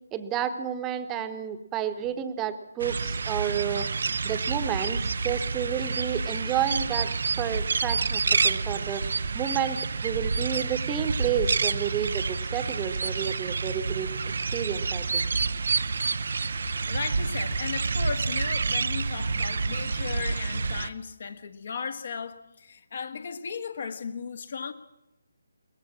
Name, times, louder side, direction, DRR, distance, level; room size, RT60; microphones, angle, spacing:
voice 1, 0.1-3.9 4.2-7.1 7.4-9.0 9.3-14.1 14.5-15.3, right 9 dB, 15° right, 9 dB, 1.3 m, -31 dB
sound 1, 2.8-20.9, right 4 dB, 55° right, 0.8 m, -28 dB
voice 2, 16.5-24.7, left 6 dB, 45° left, 9 dB, 1.6 m, -36 dB
22.5 x 19.0 x 7.5 m, 0.90 s
figure-of-eight pair, 145°, 0 cm